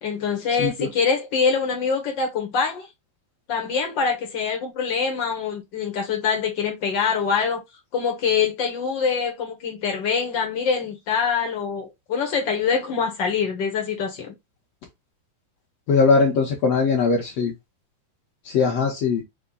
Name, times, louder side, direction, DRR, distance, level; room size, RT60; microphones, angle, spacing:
voice 1, 0.0-2.9 3.5-7.6 7.9-14.3, left 6 dB, 90° left, 1.0 m, -24 dB
voice 2, 15.9-17.5 18.5-19.2, left 4 dB, 65° left, 1.8 m, -20 dB
5.6 x 2.2 x 3.8 m
omnidirectional pair, 3.5 m